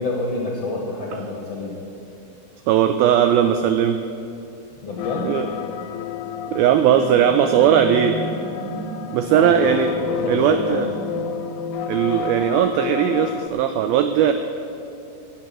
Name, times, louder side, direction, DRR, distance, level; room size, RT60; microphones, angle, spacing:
voice 1, 0.0-1.8 4.8-5.4 9.3-10.9, left 2 dB, 60° left, -1 dB, 1.7 m, -28 dB
voice 2, 2.7-4.0 5.2-5.5 6.5-8.2 9.1-9.9 10.3-10.9 11.9-14.3, right 9 dB, 85° right, 8 dB, 2.1 m, -18 dB
sound 1, 5.0-13.5, left 9 dB, 85° left, 2.7 m, -30 dB
sound 2, 6.8-13.1, right 3 dB, 50° right, 3.3 m, -36 dB
16.0 x 6.8 x 9.0 m, 2.7 s
omnidirectional pair, 4.9 m